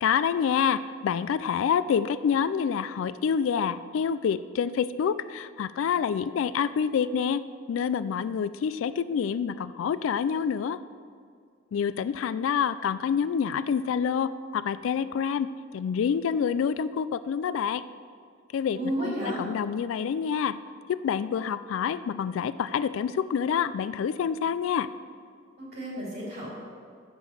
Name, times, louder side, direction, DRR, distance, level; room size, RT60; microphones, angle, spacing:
voice 1, 0.0-7.4 7.7-10.8 11.7-15.5 15.7-17.8 18.5-20.6 20.9-24.9, left 7 dB, 90° left, 15 dB, 0.3 m, -27 dB
voice 2, 18.7-19.4 25.6-26.5, right 1 dB, 50° right, -5 dB, 2.7 m, -32 dB
7.5 x 7.0 x 6.3 m, 2.2 s
head